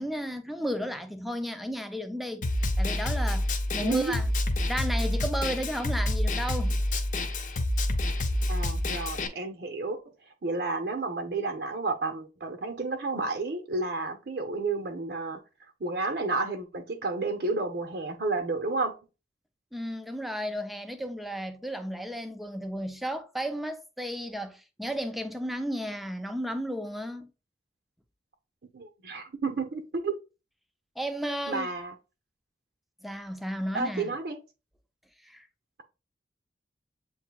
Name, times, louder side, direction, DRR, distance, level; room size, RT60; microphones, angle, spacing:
voice 1, 0.0-2.4 2.8-4.3 4.7-6.8 19.7-27.3 31.0-31.7 33.0-34.1 35.2-35.5, equal, ahead, 0.4 m, -33 dB
Snare drum, 2.4-9.3, left 1 dB, 45° left, 0.6 m, -28 dB
voice 2, 3.8-4.2 8.5-18.9 28.7-30.2 31.5-31.9 33.7-34.4, right 3 dB, 60° right, 0.7 m, -31 dB
8.0 x 2.7 x 2.3 m
head